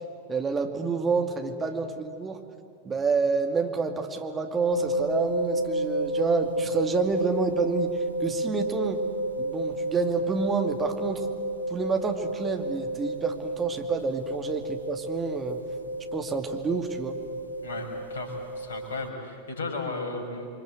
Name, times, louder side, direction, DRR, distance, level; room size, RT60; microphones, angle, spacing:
voice 1, 0.3-2.4 2.8-7.9 8.2-9.0 9.4-11.3 11.7-15.6 16.1-17.2, right 5 dB, 20° right, 4 dB, 2.4 m, -28 dB
sound 1, 4.7-19.1, right 1 dB, 75° left, 0.9 m, -31 dB
voice 2, 17.6-20.5, left 3 dB, 60° left, 4 dB, 5.5 m, -35 dB
29.0 x 24.0 x 8.2 m, 2.4 s
figure-of-eight pair, 90°, 0 cm